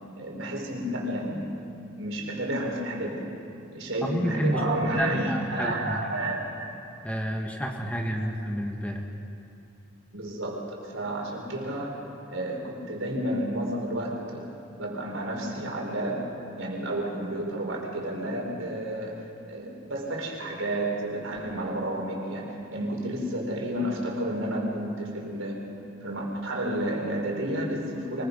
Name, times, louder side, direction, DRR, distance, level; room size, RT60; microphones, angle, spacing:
voice 1, 0.2-1.5 2.0-3.3 3.7-6.7 8.2-8.3 10.1-12.0 12.3-25.6 26.0-28.2, right 1 dB, 85° right, -1 dB, 4.5 m, -31 dB
voice 2, 4.0-4.6 5.0-6.0 7.0-9.0, equal, 5° left, 1 dB, 1.6 m, -29 dB
24.0 x 21.5 x 5.5 m, 2.6 s
head